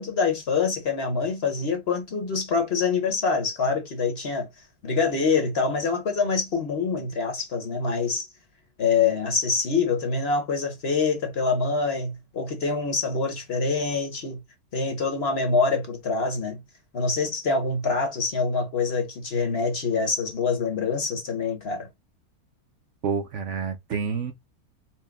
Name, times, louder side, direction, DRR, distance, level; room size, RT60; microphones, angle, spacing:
voice 1, 0.0-4.5 4.8-8.3 8.8-14.4 14.7-16.6 16.9-21.9, left 4 dB, 45° left, 1.2 m, -25 dB
voice 2, 23.0-24.3, right 6 dB, 60° right, 0.9 m, -28 dB
4.5 x 2.2 x 3.4 m
omnidirectional pair, 1.6 m